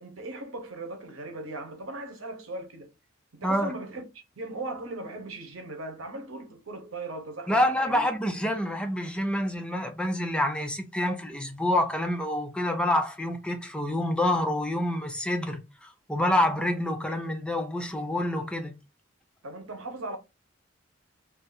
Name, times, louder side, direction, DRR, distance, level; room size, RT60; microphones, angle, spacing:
voice 1, 0.0-2.9 3.3-4.0 4.4-8.1 19.4-20.2, right 2 dB, 90° right, 0.9 m, -38 dB
voice 2, 7.5-18.7, left 1 dB, 5° left, 0.4 m, -27 dB
2.6 x 2.4 x 3.9 m
head